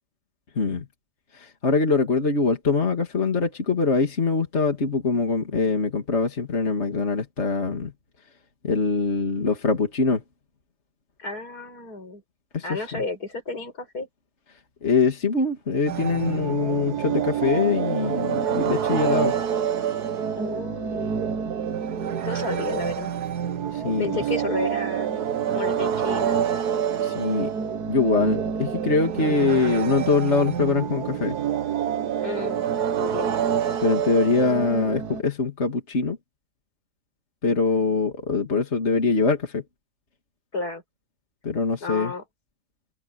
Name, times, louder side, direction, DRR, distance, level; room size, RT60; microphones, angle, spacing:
voice 1, 0.6-0.9 1.3-7.9 8.6-10.2 12.5-13.0 14.8-19.4 23.7-24.1 27.0-27.5 27.9-31.4 33.8-36.2 37.4-39.6 41.4-42.1, left 4 dB, 45° left, 2.7 m, -23 dB
voice 2, 11.2-12.2 12.6-14.1 20.4-21.1 22.2-23.1 24.0-26.5 32.2-32.7 33.0-33.4 40.5-40.8 41.8-42.2, left 3 dB, 75° left, 6.1 m, -32 dB
sound 1, 15.9-35.2, right 8 dB, 80° right, 1.7 m, -27 dB
omnidirectional pair, 1.7 m